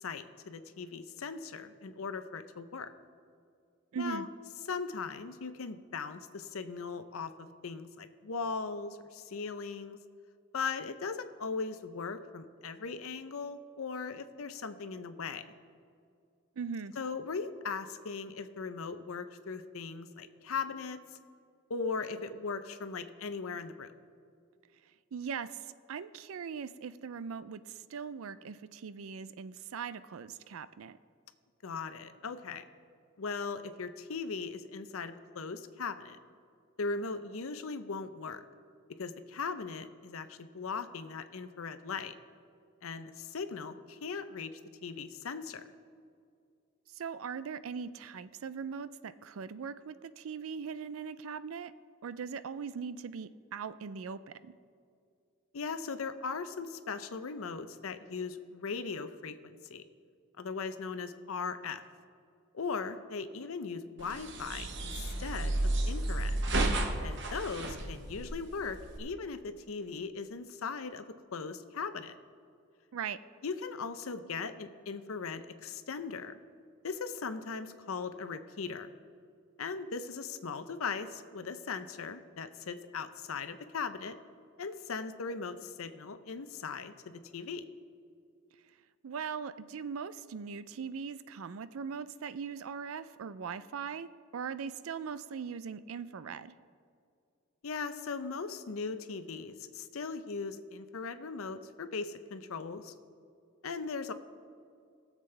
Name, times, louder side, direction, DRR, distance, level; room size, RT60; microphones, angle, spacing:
voice 1, 0.0-2.9 4.0-4.3 4.7-10.0 10.5-15.4 17.0-21.0 21.7-23.9 31.6-32.6 33.2-36.2 36.8-38.4 39.0-42.1 42.8-45.6 55.5-59.8 60.4-61.8 62.5-66.4 67.0-71.0 71.3-72.1 73.4-76.3 76.8-78.9 79.6-84.2 84.6-87.7 97.6-102.9 103.6-104.1, left 4 dB, 85° left, 10 dB, 0.6 m, -39 dB
voice 2, 3.9-4.3 16.6-16.9 25.1-25.6 25.9-31.0 46.9-51.7 52.0-54.5 72.9-73.2 89.0-96.5, right 6 dB, 80° right, 14 dB, 0.4 m, -40 dB
sound 1, 64.0-69.0, right 2 dB, 55° right, 0.9 m, -32 dB
20.0 x 7.4 x 3.3 m, 2.3 s
head